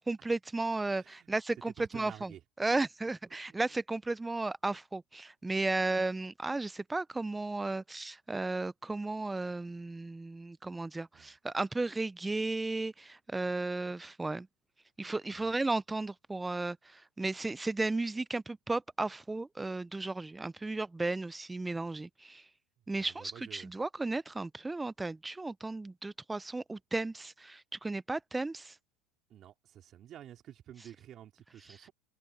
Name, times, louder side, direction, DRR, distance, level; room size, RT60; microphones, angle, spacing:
voice 1, 0.0-2.3 2.6-14.5 15.0-22.5 22.9-28.8, right 2 dB, 10° right, 0.4 m, -34 dB
voice 2, 0.9-1.3 1.8-2.4 3.0-3.1 3.5-3.6 11.1-11.3 15.4-15.5 23.0-23.7 29.3-31.9, right 11 dB, 40° right, 4.2 m, -51 dB
supercardioid pair, 120°, 0 cm